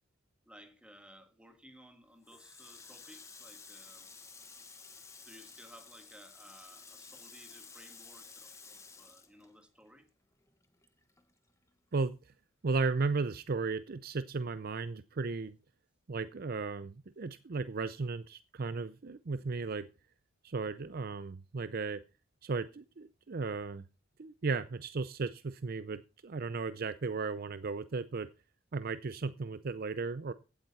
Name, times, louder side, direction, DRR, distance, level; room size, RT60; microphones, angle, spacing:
voice 1, 0.4-4.1 5.2-10.1, equal, 5° right, 1.6 m, -57 dB
Water tap faucet, 2.2-10.1 10.4-11.7, left 4 dB, 15° left, 1.2 m, -53 dB
voice 2, 12.6-15.6 16.1-19.9 20.4-22.0 22.4-23.8 24.2-28.3 28.7-30.3, right 4 dB, 45° right, 0.5 m, -35 dB
16.0 x 8.8 x 4.1 m
head